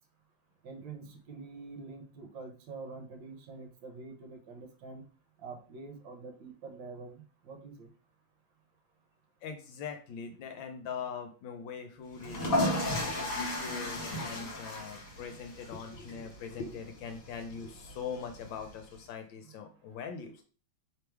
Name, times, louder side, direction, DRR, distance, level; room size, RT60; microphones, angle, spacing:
voice 1, 0.6-5.1 5.4-7.9, right 4 dB, 65° right, 6 dB, 1.4 m, -46 dB
voice 2, 9.4-12.9 13.1-20.4, left 6 dB, 70° left, 6 dB, 1.2 m, -42 dB
sound 1, 12.1-19.0, left 1 dB, 45° left, 1.5 m, -35 dB
3.4 x 3.3 x 4.5 m, 0.40 s
omnidirectional pair, 2.4 m